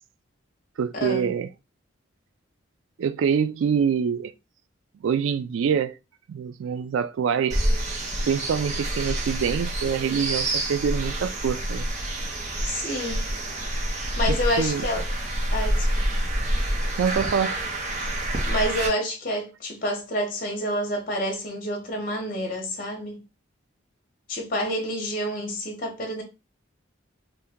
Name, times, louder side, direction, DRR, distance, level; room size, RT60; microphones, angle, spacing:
voice 1, 0.8-1.5 3.0-4.3 5.0-5.9 6.3-7.7 8.3-11.9 14.3-14.8 17.0-17.6, right 7 dB, 75° right, 0.3 m, -25 dB
sound 1, 7.5-18.9, right 1 dB, 35° right, 0.7 m, -27 dB
voice 2, 12.6-13.3 14.2-15.0 15.5-15.9 18.5-23.2 24.3-26.2, equal, 40° left, 0.8 m, -28 dB
2.8 x 2.2 x 3.5 m
head